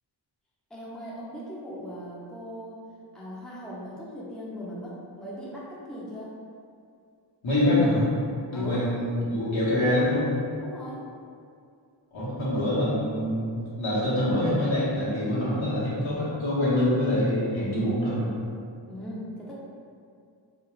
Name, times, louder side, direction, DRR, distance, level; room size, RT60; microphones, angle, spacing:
voice 1, 0.7-2.8 3.1-6.3 8.5-8.9 10.6-11.0 18.9-19.5, equal, ahead, -6 dB, 0.5 m, -39 dB
voice 2, 7.4-8.1 8.5-10.3 12.1-18.3, left 1 dB, 75° left, -9 dB, 1.0 m, -25 dB
2.4 x 2.3 x 3.0 m, 2.4 s
wide cardioid pair, 50°, 47 cm